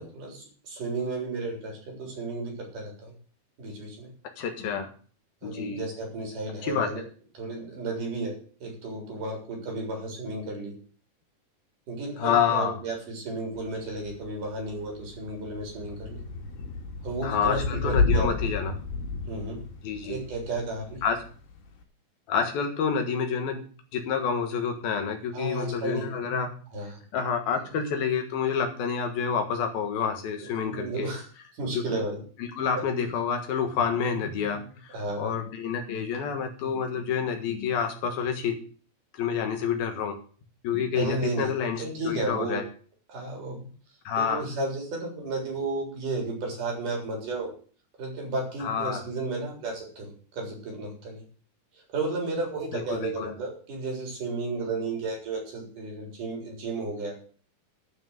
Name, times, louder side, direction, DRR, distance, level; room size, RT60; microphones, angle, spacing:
voice 1, 0.0-3.1 3.6-4.1 5.4-7.0 7.4-8.3 8.6-10.7 11.9-16.2 17.0-18.3 19.3-19.6 20.0-21.0 25.3-26.1 26.7-27.0 30.6-31.3 31.5-32.2 32.7-32.8 34.9-35.3 41.0-41.5 41.8-42.6 43.1-43.7 44.2-47.5 48.0-51.2 51.9-57.2, right 2 dB, 55° right, 0 dB, 5.3 m, -33 dB
voice 2, 4.4-4.9 5.4-5.9 6.6-6.9 12.2-12.8 17.2-18.8 19.8-20.2 21.0-21.2 22.3-23.6 23.9-26.5 27.1-31.1 31.7-31.9 32.4-38.6 39.1-40.2 40.6-42.6 44.0-44.4 48.6-49.0 52.7-53.3, left 7 dB, 70° left, 5 dB, 3.3 m, -28 dB
Thunder / Rain, 13.6-21.8, left 3 dB, 90° left, 4.5 m, -32 dB
12.0 x 6.1 x 7.5 m, 0.42 s
omnidirectional pair, 4.5 m